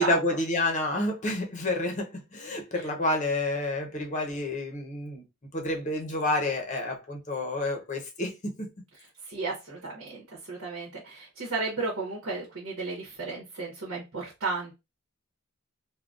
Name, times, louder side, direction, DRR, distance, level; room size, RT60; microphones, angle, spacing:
voice 1, 0.0-5.2 5.5-8.7, left 1 dB, 35° left, 0.7 m, -29 dB
voice 2, 9.3-14.7, right 3 dB, 80° right, 1.0 m, -34 dB
3.7 x 2.2 x 2.4 m
head